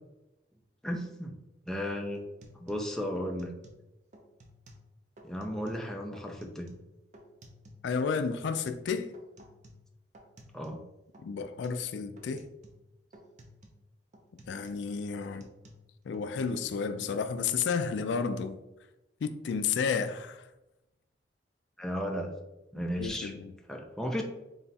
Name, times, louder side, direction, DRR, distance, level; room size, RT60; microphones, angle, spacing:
voice 1, 0.8-1.3 1.7-2.2 2.6-3.6 5.2-6.7 10.5-10.8 21.8-22.3 22.7-23.3 23.7-24.2, equal, 5° left, 0.4 m, -34 dB
sound 1, 1.7-1.8 2.1-3.9 4.1-4.9 5.2-5.9 6.2-7.9 8.1-10.9 11.1-11.9 12.2-12.9 13.1-13.8 14.1-16.9 17.1-17.7, equal, 45° right, 0.6 m, -55 dB
voice 2, 7.8-9.1 11.2-12.5 14.5-15.5 16.1-18.6 19.2-20.4 23.0-23.5, left 5 dB, 80° left, 0.3 m, -31 dB
3.9 x 2.3 x 4.0 m
head